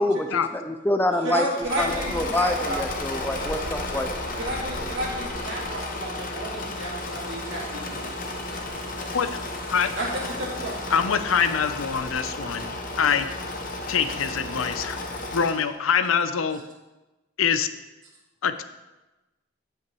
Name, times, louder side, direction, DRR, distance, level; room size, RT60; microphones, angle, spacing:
voice 1, 0.0-4.1, left 1 dB, 10° left, 6 dB, 0.4 m, -26 dB
voice 2, 1.2-2.8 4.4-8.1 10.0-10.9, right 1 dB, 70° right, -5 dB, 2.9 m, -32 dB
Engine / Mechanisms, 1.5-15.8, left 2 dB, 40° left, 0.9 m, -33 dB
sound 1, 1.6-12.1, equal, 45° right, 3.4 m, -44 dB
voice 3, 10.9-13.4 13.9-15.0 15.3-16.7 17.4-17.7 18.4-18.6, left 7 dB, 85° left, 11 dB, 0.6 m, -24 dB
16.5 x 5.8 x 3.1 m, 1.1 s
head